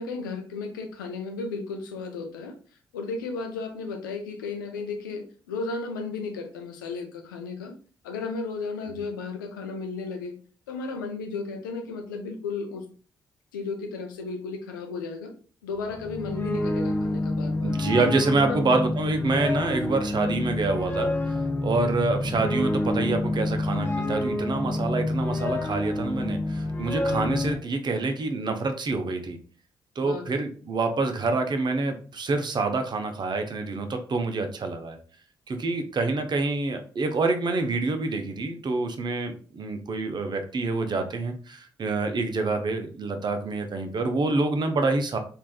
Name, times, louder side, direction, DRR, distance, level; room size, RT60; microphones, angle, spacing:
voice 1, 0.0-2.6 2.9-7.7 8.0-10.4 10.7-12.8 13.5-15.3 15.6-17.8 18.4-18.8 30.0-30.5, left 4 dB, 90° left, 5 dB, 0.4 m, -34 dB
sound 1, 15.8-27.6, left 2 dB, 20° left, 0.6 m, -28 dB
voice 2, 17.6-29.4 30.0-35.0 35.5-45.2, right 3 dB, 45° right, 6 dB, 0.6 m, -27 dB
3.3 x 2.5 x 2.2 m, 0.41 s
hypercardioid pair, 40°, 10 cm